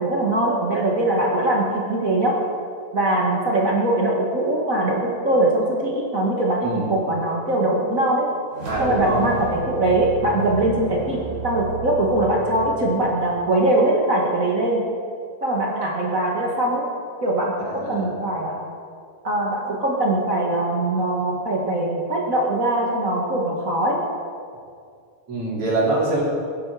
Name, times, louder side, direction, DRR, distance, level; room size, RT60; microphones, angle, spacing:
voice 1, 0.0-2.4 2.9-8.3 8.8-14.8 15.4-16.9 17.2-18.6 19.2-24.0, right 1 dB, 85° right, -3 dB, 0.7 m, -22 dB
voice 2, 6.6-6.9 8.7-9.3 17.7-18.1 25.3-26.2, right 2 dB, 35° right, -5 dB, 3.8 m, -24 dB
sound 1, 8.5-13.9, right 4 dB, 70° right, 5.0 m, -34 dB
22.0 x 11.0 x 4.9 m, 2.3 s
omnidirectional pair, 4.5 m